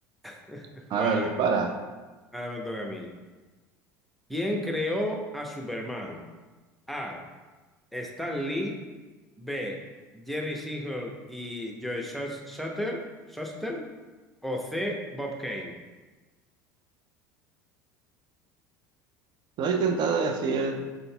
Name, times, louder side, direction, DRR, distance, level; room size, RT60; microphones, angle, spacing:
voice 1, 0.2-1.3 2.3-3.1 4.3-6.2 6.9-7.2 7.9-8.8 9.4-9.8 10.1-13.9 14.4-15.7, left 1 dB, ahead, 0 dB, 0.7 m, -33 dB
voice 2, 0.9-1.7 19.6-20.8, right 5 dB, 50° right, 5 dB, 0.5 m, -25 dB
5.6 x 3.9 x 2.2 m, 1.2 s
hypercardioid pair, 75°, 9 cm